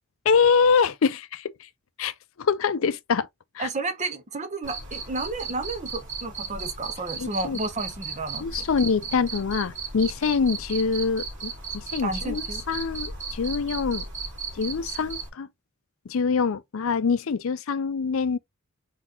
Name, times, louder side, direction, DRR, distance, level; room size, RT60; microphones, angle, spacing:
voice 1, 0.2-1.7 2.0-3.3 3.5-3.7 7.2-7.6 8.4-14.0 14.5-15.5 16.1-18.4, left 5 dB, 65° left, 0.5 m, -25 dB
voice 2, 3.6-8.5 12.0-12.6, right 2 dB, 35° right, 0.8 m, -32 dB
Cricket, 4.6-15.3, right 4 dB, 55° right, 2.4 m, -36 dB
4.1 x 4.0 x 2.9 m
head